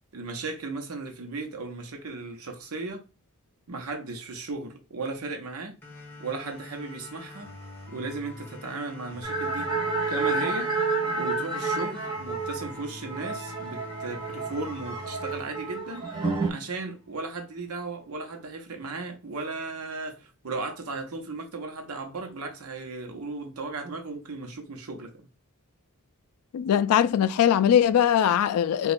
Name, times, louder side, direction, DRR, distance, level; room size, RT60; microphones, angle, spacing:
voice 1, 0.1-3.0 3.7-5.8 6.2-7.5 7.9-9.8 10.1-10.7 11.1-25.1, right 3 dB, 85° right, 0.8 m, -36 dB
sound 1, 5.8-16.8, left 2 dB, 10° left, 1.1 m, -44 dB
sound 2, 9.2-16.5, right 3 dB, 20° right, 0.7 m, -30 dB
voice 2, 26.5-28.9, left 9 dB, 85° left, 0.3 m, -21 dB
3.0 x 2.3 x 4.1 m
head